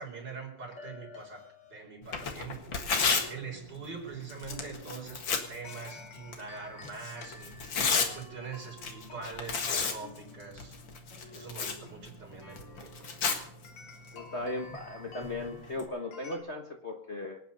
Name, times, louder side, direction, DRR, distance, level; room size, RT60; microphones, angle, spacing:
voice 1, 0.0-2.7 3.3-7.6 8.1-10.8 11.3-13.2, right 5 dB, 50° right, 0 dB, 4.9 m, -43 dB
sound 1, 0.7-16.4, left 3 dB, 85° left, 3.1 m, -52 dB
Tearing, 2.0-15.9, left 5 dB, 60° left, 2.4 m, -35 dB
voice 2, 14.1-17.4, left 2 dB, 35° left, 2 dB, 1.4 m, -37 dB
25.5 x 9.1 x 5.4 m, 0.65 s
omnidirectional pair, 2.3 m